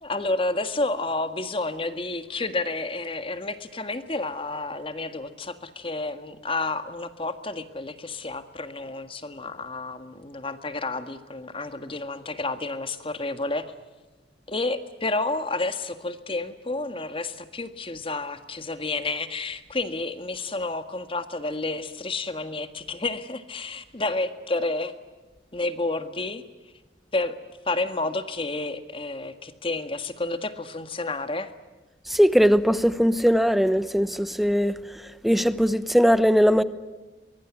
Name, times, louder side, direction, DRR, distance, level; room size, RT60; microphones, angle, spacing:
voice 1, 0.0-13.7 14.5-24.9 25.5-26.4 27.1-27.4 27.6-31.5, left 2 dB, 30° left, 1.7 m, -30 dB
voice 2, 32.1-34.8 35.2-36.6, equal, ahead, 0.9 m, -20 dB
23.5 x 22.0 x 9.6 m
head